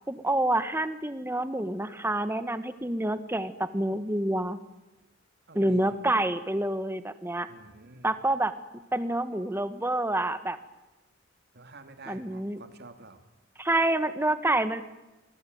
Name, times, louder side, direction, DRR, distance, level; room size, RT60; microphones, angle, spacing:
voice 1, 0.1-4.6 5.5-7.5 8.0-8.5 8.9-10.6 12.1-12.6 13.6-14.8, right 1 dB, 10° right, 12 dB, 1.4 m, -27 dB
voice 2, 5.5-6.0 7.5-8.1 11.5-13.2, right 3 dB, 55° right, 8 dB, 2.7 m, -49 dB
27.5 x 22.0 x 9.4 m, 1.0 s
head